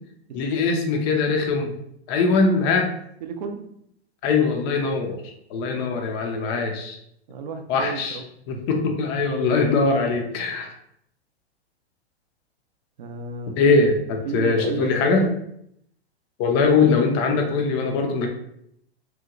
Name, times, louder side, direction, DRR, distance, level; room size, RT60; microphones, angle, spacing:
voice 1, 0.3-1.7 2.1-2.9 4.2-5.2 5.5-7.0 7.7-8.2 8.5-10.7 13.6-15.3 16.4-18.3, left 4 dB, 25° left, 3 dB, 0.4 m, -21 dB
voice 2, 3.2-3.7 7.3-8.2 8.5-8.7 13.0-13.6 14.2-15.4 16.5-16.6, right 5 dB, 40° right, 5 dB, 0.4 m, -32 dB
3.0 x 2.1 x 3.6 m, 0.73 s
figure-of-eight pair, 105°, 33 cm